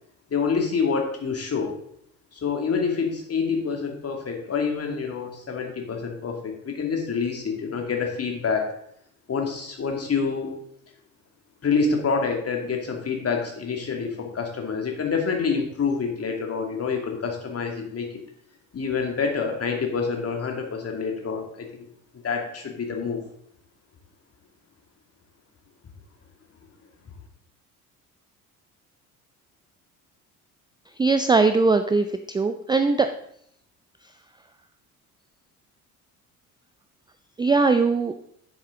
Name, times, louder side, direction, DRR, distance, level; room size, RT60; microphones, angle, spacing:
voice 1, 0.3-1.7 2.3-8.7 9.3-10.6 11.6-18.1 18.7-21.9 22.2-23.2, left 5 dB, 35° left, 2 dB, 2.5 m, -27 dB
voice 2, 31.0-33.1 37.4-38.1, right 4 dB, 10° right, 8 dB, 0.5 m, -20 dB
10.0 x 7.5 x 3.8 m, 0.69 s
figure-of-eight pair, 55°, 44 cm